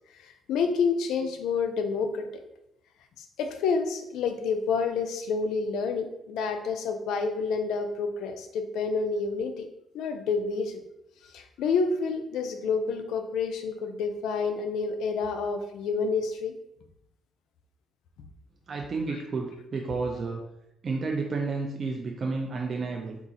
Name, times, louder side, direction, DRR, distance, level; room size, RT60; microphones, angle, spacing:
voice 1, 0.1-2.3 3.2-9.7 9.9-10.8 11.2-16.5, left 5 dB, 85° left, 6 dB, 0.4 m, -29 dB
voice 2, 18.7-20.4 20.8-23.2, right 4 dB, 45° right, 1 dB, 0.4 m, -31 dB
3.8 x 2.3 x 2.7 m, 0.84 s
cardioid pair, 90°, 0 cm